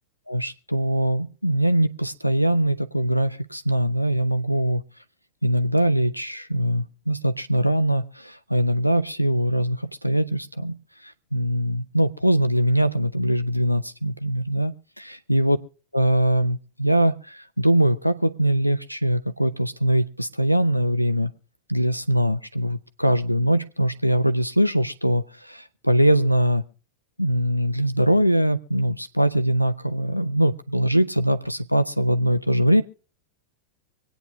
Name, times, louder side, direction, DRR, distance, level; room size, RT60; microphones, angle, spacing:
voice 1, 0.3-4.8 5.4-10.7 11.3-15.6 15.9-21.3 21.7-26.6 27.2-32.8, right 1 dB, 90° left, 11 dB, 0.6 m, -22 dB
25.0 x 9.1 x 3.1 m, 0.37 s
figure-of-eight pair, 90°, 0 cm